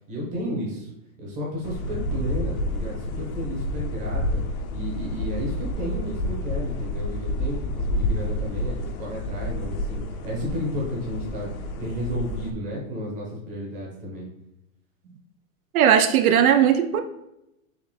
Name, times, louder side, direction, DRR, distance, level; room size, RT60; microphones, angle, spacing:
voice 1, 0.1-0.9 1.2-4.4 4.7-11.5 11.7-14.3, equal, 20° right, -4 dB, 0.9 m, -32 dB
sound 1, 1.6-12.5, left 1 dB, 80° left, 0.7 m, -29 dB
voice 2, 15.7-17.0, right 9 dB, 85° right, 8 dB, 0.6 m, -18 dB
4.0 x 3.2 x 3.2 m, 0.84 s
supercardioid pair, 165°, 42 cm